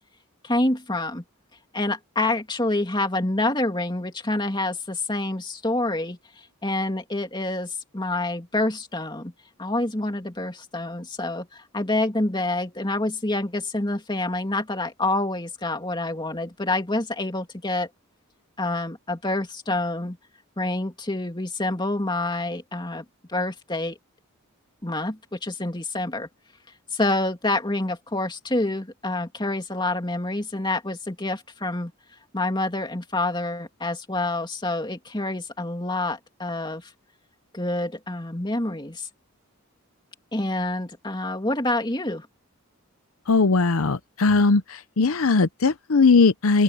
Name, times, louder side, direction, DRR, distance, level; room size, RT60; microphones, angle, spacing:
voice 1, 0.4-1.2 1.7-6.2 6.6-9.3 9.6-17.9 18.6-20.2 20.6-24.0 24.8-26.3 26.9-31.9 32.3-36.9 37.5-39.1 40.3-42.3, left 2 dB, 20° left, 2.6 m, -27 dB
voice 2, 43.3-44.6 45.0-46.6, left 4 dB, 75° left, 0.7 m, -19 dB
open air
head